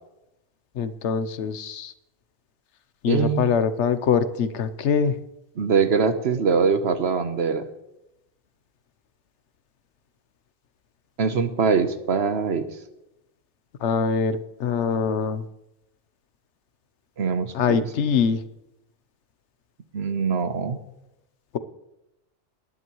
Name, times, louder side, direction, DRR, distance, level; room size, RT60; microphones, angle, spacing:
voice 1, 0.8-1.9 3.0-5.2 13.8-15.5 17.5-18.4, left 6 dB, 85° left, 13 dB, 1.1 m, -23 dB
voice 2, 3.1-3.5 5.6-7.6 11.2-12.7 17.2-17.8 19.9-20.8, right 5 dB, 65° right, 10 dB, 1.2 m, -23 dB
19.5 x 11.0 x 3.1 m, 0.90 s
omnidirectional pair, 1.2 m